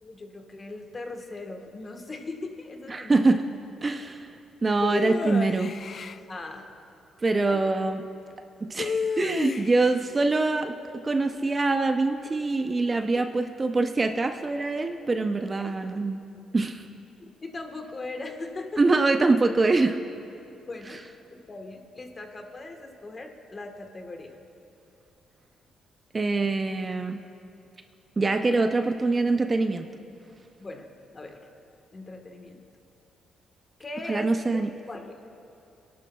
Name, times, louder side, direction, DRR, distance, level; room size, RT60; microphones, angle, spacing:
voice 1, 0.0-3.4 6.3-6.7 7.4-7.6 13.1-13.2 17.4-18.8 20.7-21.0 21.3-24.3 30.6-31.5 31.9-32.6 33.8-35.2, left 2 dB, 30° left, 4 dB, 1.3 m, -39 dB
voice 2, 2.9-3.5 3.8-4.3 4.6-5.7 7.2-8.0 8.6-10.7 11.0-16.2 16.5-16.9 18.8-20.0 26.1-27.2 28.2-29.9 34.1-34.7, right 3 dB, 30° right, 6 dB, 0.6 m, -24 dB
sound 1, 4.8-6.2 8.8-9.9, left 5 dB, 45° left, 0.3 m, -30 dB
23.5 x 11.5 x 2.3 m, 2.7 s
cardioid pair, 90°, 0 cm